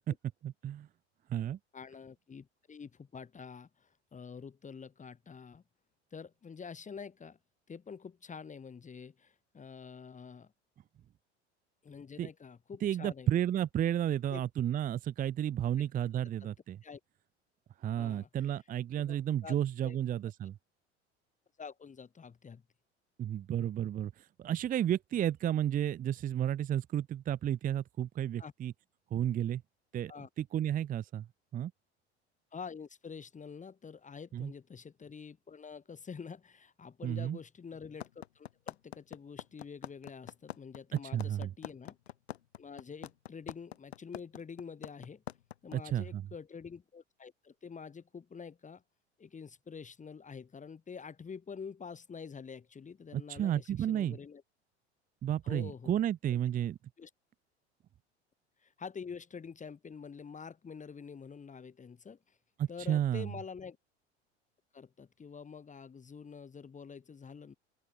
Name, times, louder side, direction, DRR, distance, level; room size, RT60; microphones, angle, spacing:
voice 1, 0.4-0.9 1.3-1.6 12.2-12.3 12.8-16.8 17.8-20.6 23.2-28.7 29.1-29.6 29.9-30.1 30.4-31.3 31.5-31.7 34.3-34.5 37.0-37.4 40.9-41.5 45.7-46.2 53.1-54.2 55.2-56.8 62.6-63.3, right 10 dB, 25° right, 0.8 m, -32 dB
voice 2, 1.7-5.6 6.1-7.4 7.7-10.5 11.8-13.4 14.3-14.4 16.8-17.0 18.0-18.3 19.1-19.2 19.4-20.0 21.6-22.6 28.4-28.5 30.1-30.3 32.5-42.0 42.6-45.2 45.6-48.8 49.2-54.4 55.4-56.0 56.3-56.4 57.0-57.1 58.6-62.4 62.7-63.8 64.7-67.5, left 6 dB, 20° left, 5.6 m, -47 dB
sound 1, 38.0-45.8, left 12 dB, 70° left, 1.8 m, -43 dB
open air
figure-of-eight pair, 70°, 34 cm